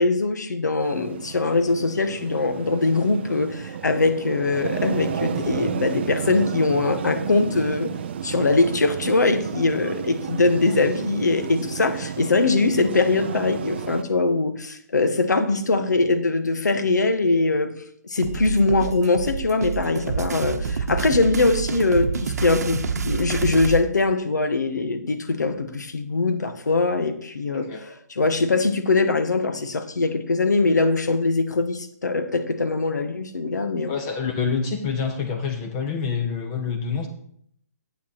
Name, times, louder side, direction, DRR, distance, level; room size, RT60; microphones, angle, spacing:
voice 1, 0.0-7.9 8.2-17.7 18.0-33.9, left 3 dB, 80° left, 9 dB, 1.3 m, -22 dB
sound 1, 0.8-14.0, right 9 dB, 40° right, 0.4 m, -32 dB
sound 2, 18.2-23.8, right 5 dB, 65° right, 0.9 m, -28 dB
voice 2, 33.9-37.1, left 5 dB, 25° left, 4 dB, 0.8 m, -27 dB
8.4 x 7.3 x 4.3 m, 0.66 s
hypercardioid pair, 155°, 9 cm